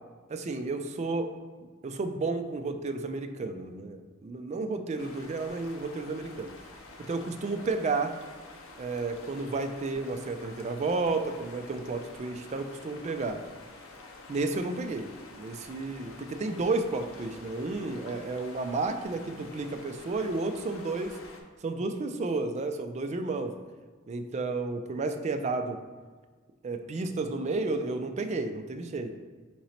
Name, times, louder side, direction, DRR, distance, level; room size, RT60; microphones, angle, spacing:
voice 1, 0.3-1.3 1.8-6.5 7.1-8.2 8.8-13.4 14.3-21.2 21.6-23.6 24.1-25.8 26.6-29.2, right 3 dB, 35° right, 7 dB, 0.3 m, -32 dB
sound 1, 5.0-21.4, left 2 dB, 80° left, 0.6 m, -48 dB
3.8 x 3.0 x 4.2 m, 1.4 s
head